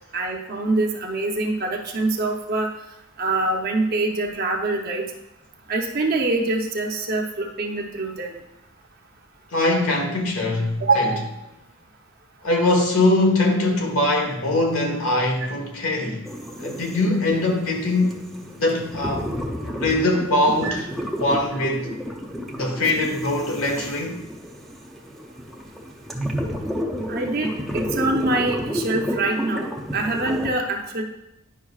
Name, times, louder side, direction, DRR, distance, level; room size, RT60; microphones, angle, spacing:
voice 1, 0.1-2.7 3.2-5.0 5.7-8.4 10.8-11.2 20.6-20.8 27.1-27.5 27.7-29.7 29.9-31.0, right 2 dB, 45° right, 1 dB, 0.8 m, -24 dB
voice 2, 9.5-11.1 12.4-16.2 16.6-18.2 18.6-19.4 19.6-20.9 21.2-21.9 22.5-24.2, left 2 dB, 75° left, 1 dB, 1.4 m, -22 dB
sound 1, 16.3-30.5, equal, ahead, 0.6 m, -31 dB
10.0 x 5.4 x 2.4 m, 0.87 s
head